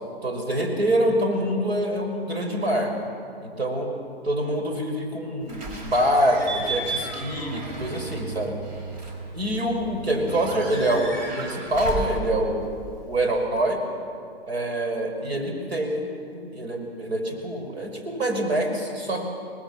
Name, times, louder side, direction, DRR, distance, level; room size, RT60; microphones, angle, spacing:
voice 1, 0.2-2.9 3.4-3.9 4.2-8.5 9.3-12.7 13.1-13.8 14.5-16.0 16.3-19.3, right 1 dB, 80° right, 3 dB, 5.7 m, -25 dB
Slam / Squeak / Alarm, 5.5-13.5, right 3 dB, 45° right, 4.7 m, -34 dB
24.5 x 19.0 x 7.4 m, 2.4 s
hypercardioid pair, 145°, 31 cm